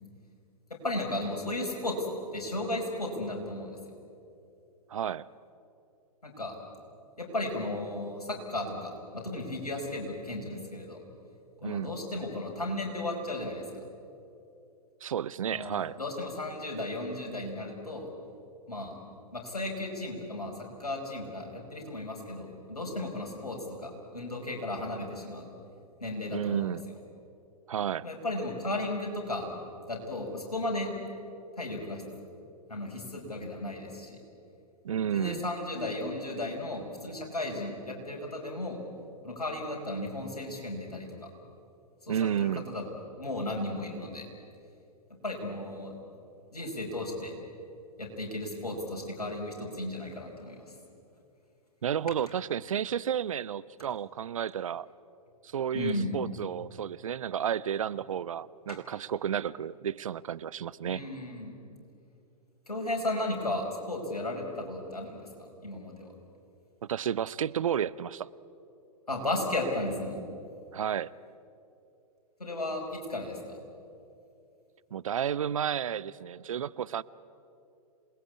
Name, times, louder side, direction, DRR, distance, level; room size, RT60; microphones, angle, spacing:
voice 1, 0.7-2.1 2.3-3.8 6.2-6.6 7.2-11.0 11.6-13.8 15.5-18.1 18.7-19.0 19.3-20.5 20.8-25.5 26.0-26.8 28.0-29.5 29.9-30.9 31.6-32.0 32.7-34.2 35.1-38.8 39.2-41.3 42.0-42.8 43.1-44.3 45.2-45.9 46.5-47.3 48.0-50.6 55.7-56.1 58.7-58.8 60.9-61.5 62.7-65.3 65.6-66.1 69.1-70.2 72.4-73.6, left 1 dB, 75° left, 1 dB, 5.7 m, -35 dB
voice 2, 4.9-5.3 11.6-11.9 15.0-16.0 26.3-26.8 27.7-28.1 34.8-35.5 42.1-42.7 51.8-54.9 55.4-61.0 66.8-68.3 70.7-71.1 74.9-77.0, right 9 dB, 60° right, 20 dB, 0.6 m, -32 dB
27.0 x 20.0 x 8.5 m, 2.7 s
figure-of-eight pair, 110°, 20 cm